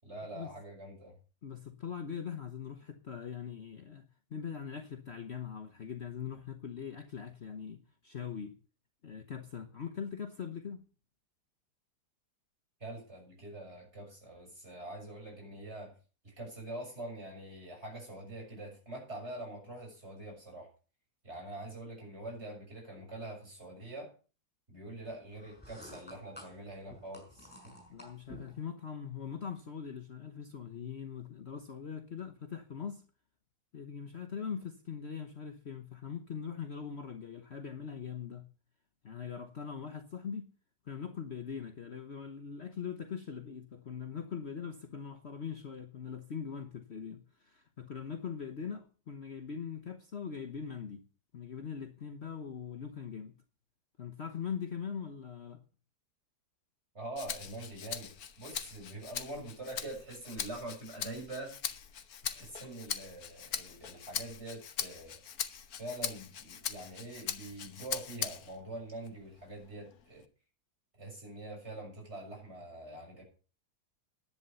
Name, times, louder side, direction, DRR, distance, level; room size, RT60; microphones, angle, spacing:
voice 1, 0.0-1.2 12.8-15.9 16.2-20.7 21.2-24.1 24.7-27.8 56.9-61.5 62.3-65.2 65.8-70.3 71.0-73.2, right 1 dB, 40° right, 7.0 m, -44 dB
voice 2, 1.4-8.6 9.0-10.8 27.9-33.0 33.7-38.5 39.0-40.5 40.9-51.0 51.3-53.4 54.0-55.6, left 7 dB, 45° left, 1.2 m, -41 dB
sound 1, 25.3-28.6, left 1 dB, 5° left, 5.6 m, -51 dB
Rattle (instrument), 57.2-68.6 69.1-70.2, left 8 dB, 65° left, 1.5 m, -41 dB
11.0 x 9.7 x 6.9 m
omnidirectional pair, 1.7 m